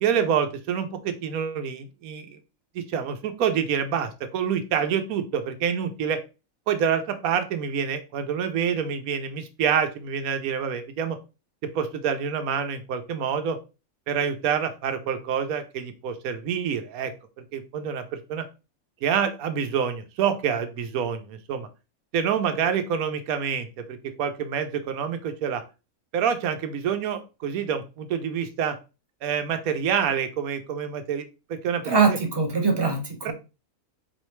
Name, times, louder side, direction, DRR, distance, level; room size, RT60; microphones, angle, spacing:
voice 1, 0.0-2.4 2.7-6.2 6.7-11.2 11.7-13.6 14.1-17.1 17.5-18.4 19.0-21.7 22.1-25.6 26.1-28.8 29.2-31.2 31.5-32.2 33.2-33.3, right 7 dB, 75° right, 8 dB, 1.1 m, -27 dB
voice 2, 31.8-33.3, right 4 dB, 40° right, 3 dB, 0.3 m, -22 dB
4.1 x 3.1 x 3.1 m, 0.30 s
omnidirectional pair, 1.5 m